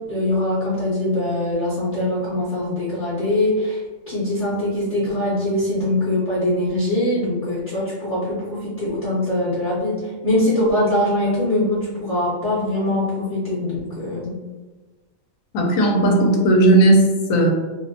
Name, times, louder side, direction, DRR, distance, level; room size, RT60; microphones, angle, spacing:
voice 1, 0.1-3.8 4.1-14.3, left 1 dB, 40° left, -8 dB, 0.6 m, -22 dB
voice 2, 15.5-17.5, right 2 dB, 85° left, 0 dB, 1.0 m, -15 dB
2.5 x 2.1 x 2.6 m, 1.3 s
omnidirectional pair, 1.4 m